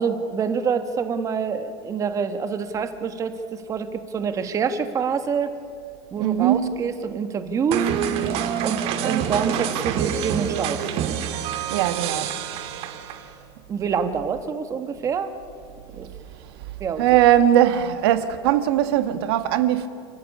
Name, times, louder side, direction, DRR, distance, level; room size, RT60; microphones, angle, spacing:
voice 1, 0.0-5.5 6.1-7.9 8.6-10.8 13.7-15.3 16.0-16.1 16.8-17.0, right 6 dB, 25° right, 1.6 m, -26 dB
voice 2, 6.2-6.8 11.7-12.3 16.4-16.5 17.0-19.9, right 11 dB, 75° right, 1.6 m, -20 dB
sound 1, 7.7-13.4, right 9 dB, 45° right, 1.8 m, -26 dB
29.5 x 13.5 x 9.8 m
supercardioid pair, 145°, 13 cm